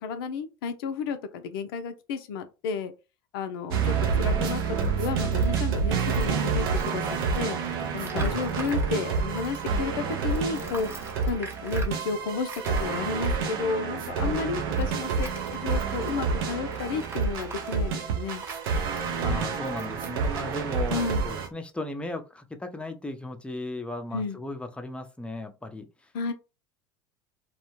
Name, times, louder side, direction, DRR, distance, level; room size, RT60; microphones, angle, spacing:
voice 1, 0.0-2.9 3.3-3.9 4.2-7.6 7.9-10.9 11.3-12.5 12.8-18.4 20.9-21.2 24.1-24.4 26.1-26.3, left 5 dB, 75° left, 0.5 m, -32 dB
sound 1, 3.7-21.5, right 5 dB, 75° right, 0.6 m, -28 dB
voice 2, 3.8-4.2 8.1-8.4 14.3-14.7 19.2-26.1, left 1 dB, 10° left, 0.5 m, -36 dB
Tools, 4.0-9.8 10.1-21.5, right 3 dB, 20° right, 0.9 m, -46 dB
2.3 x 2.1 x 3.0 m
hypercardioid pair, 75°, 12 cm